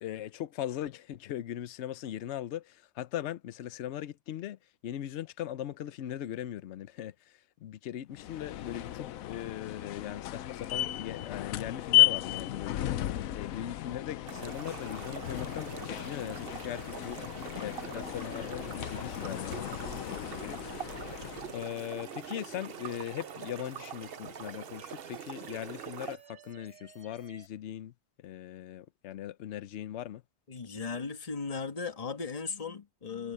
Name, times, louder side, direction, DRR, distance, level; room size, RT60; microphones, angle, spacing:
voice 1, 0.0-4.6 4.8-7.1 7.6-12.9 13.4-17.2 17.6-20.6 21.5-27.9 28.2-30.2, left 11 dB, 65° left, 0.9 m, -39 dB
sound 1, 8.1-21.7, left 14 dB, 90° left, 1.1 m, -33 dB
sound 2, 14.3-26.2, right 9 dB, 55° right, 0.9 m, -44 dB
sound 3, 19.5-27.5, right 3 dB, 70° right, 3.2 m, -56 dB
voice 2, 30.5-33.3, left 5 dB, 30° left, 1.5 m, -37 dB
omnidirectional pair, 1.4 m